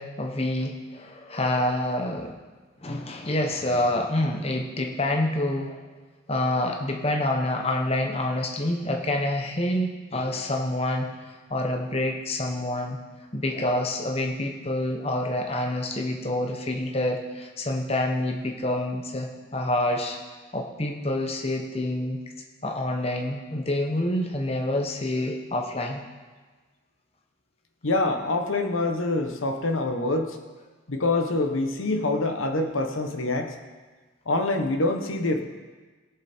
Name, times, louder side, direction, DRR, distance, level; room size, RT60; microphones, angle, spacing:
voice 1, 0.0-2.4 2.8-5.9 6.3-13.0 13.3-20.2 20.5-22.2 22.6-26.0, left 1 dB, 30° left, 2 dB, 0.9 m, -27 dB
voice 2, 27.8-30.4 30.9-33.5 34.3-35.4, left 2 dB, 80° left, 5 dB, 1.1 m, -25 dB
19.0 x 7.2 x 4.4 m, 1.3 s
head